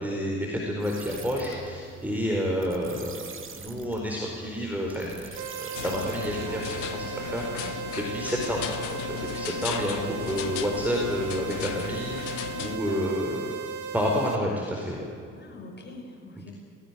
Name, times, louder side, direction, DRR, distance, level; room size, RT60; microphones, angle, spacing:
voice 1, 0.0-3.2 3.6-13.5 13.9-15.0, equal, 5° right, -2 dB, 4.4 m, -30 dB
sound 1, 0.8-7.1, right 5 dB, 35° right, 2.1 m, -44 dB
sound 2, 5.4-14.4, right 6 dB, 70° right, 1.5 m, -36 dB
sound 3, 5.7-12.8, left 12 dB, 75° left, 1.0 m, -36 dB
voice 2, 7.5-7.8 12.9-13.6 15.3-16.5, left 2 dB, 30° left, 1 dB, 6.6 m, -44 dB
18.5 x 17.5 x 9.5 m, 2.3 s
figure-of-eight pair, 45°, 37 cm